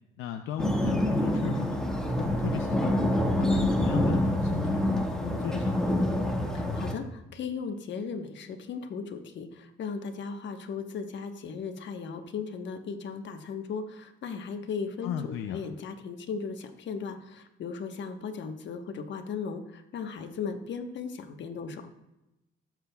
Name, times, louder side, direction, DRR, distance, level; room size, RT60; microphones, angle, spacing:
voice 1, 0.2-1.8 2.2-2.9 3.4-6.0 15.0-15.6, left 10 dB, 90° left, 6 dB, 0.5 m, -35 dB
sound 1, 0.6-6.9, left 1 dB, 5° left, 1.6 m, -26 dB
voice 2, 6.5-21.8, left 5 dB, 65° left, 6 dB, 1.2 m, -37 dB
19.5 x 7.5 x 2.3 m, 0.94 s
cardioid pair, 90°, 20 cm